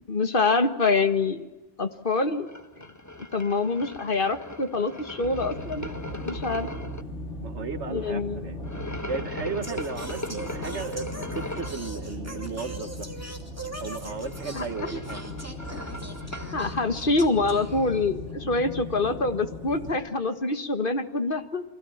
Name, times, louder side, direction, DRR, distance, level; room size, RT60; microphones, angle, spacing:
voice 1, 0.1-1.5 1.8-2.5 3.2-5.9 6.3-6.7 7.9-8.6 14.5-14.6 14.9-15.0 16.5-21.6, left 3 dB, 50° left, 9 dB, 1.8 m, -26 dB
sound 1, 2.5-7.0 8.6-11.9 14.0-16.6, left 1 dB, 15° left, 1.2 m, -39 dB
sound 2, 5.2-19.9, left 1 dB, 85° left, 3.8 m, -38 dB
voice 2, 7.4-8.6 9.1-13.1 13.8-15.2, right 4 dB, 75° right, 9 dB, 1.7 m, -35 dB
Singing, 9.6-18.3, right 2 dB, 15° right, 2.9 m, -41 dB
29.0 x 24.0 x 7.3 m, 1.1 s
omnidirectional pair, 1.2 m